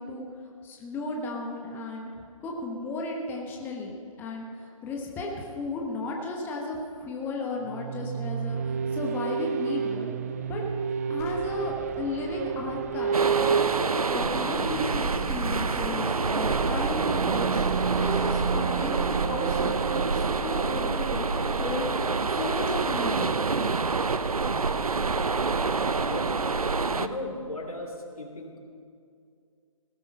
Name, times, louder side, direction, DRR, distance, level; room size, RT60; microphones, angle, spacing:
voice 1, 0.0-3.9 4.2-10.2 10.5-10.6 11.1-13.3 14.1-17.6 17.9-23.3, left 2 dB, 10° left, -1 dB, 1.3 m, -34 dB
sound 1, 7.6-22.2, right 6 dB, 25° right, 0.4 m, -32 dB
Explosion, 11.2-16.0, left 4 dB, 30° left, 1.8 m, -49 dB
sound 2, 13.1-27.1, right 4 dB, 85° right, 0.7 m, -27 dB
voice 2, 26.1-26.4 26.9-28.6, left 2 dB, 85° left, 2 dB, 3.0 m, -36 dB
17.0 x 11.5 x 5.5 m, 2.3 s
figure-of-eight pair, 145°, 18 cm